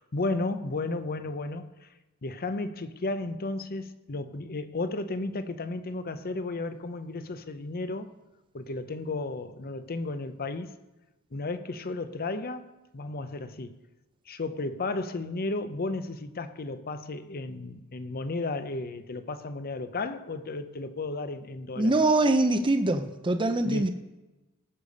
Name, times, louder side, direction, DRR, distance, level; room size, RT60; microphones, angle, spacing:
voice 1, 0.0-1.9 2.2-8.1 8.5-10.8 11.3-13.8 14.3-22.0 23.6-23.9, left 2 dB, 45° left, 0.7 m, -33 dB
voice 2, 21.8-23.9, right 2 dB, 20° right, 0.6 m, -23 dB
18.5 x 6.7 x 5.3 m
head